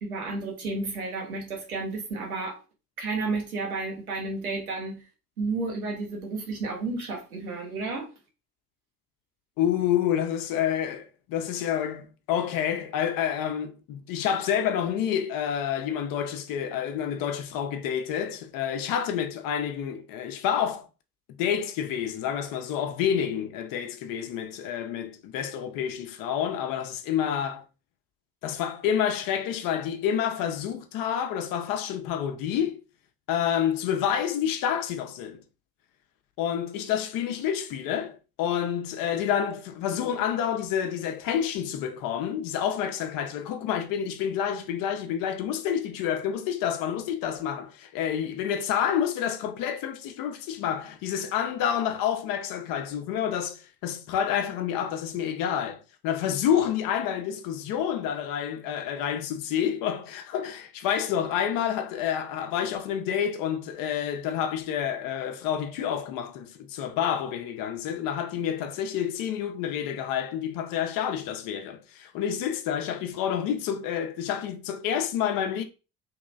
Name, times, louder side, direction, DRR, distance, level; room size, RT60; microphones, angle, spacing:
voice 1, 0.0-2.6 3.0-5.0 5.4-8.1, right 3 dB, 85° right, 0.9 m, -32 dB
voice 2, 9.6-20.9 21.4-27.6 28.4-32.8 33.3-35.4 36.4-75.6, left 9 dB, 50° left, 0.6 m, -28 dB
2.9 x 2.9 x 2.6 m
figure-of-eight pair, 55°, 43 cm